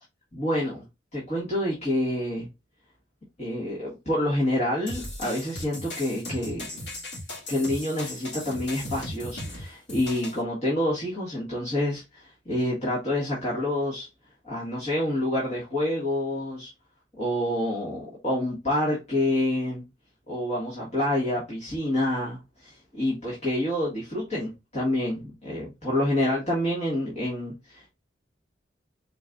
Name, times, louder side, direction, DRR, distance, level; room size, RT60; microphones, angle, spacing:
voice 1, 0.3-0.9 1.1-2.5 3.4-6.7 7.5-14.1 14.4-16.7 17.2-19.8 20.3-27.9, left 1 dB, 35° left, 1.6 m, -28 dB
sound 1, 4.9-10.4, left 1 dB, 70° left, 1.8 m, -37 dB
4.5 x 3.9 x 2.3 m
head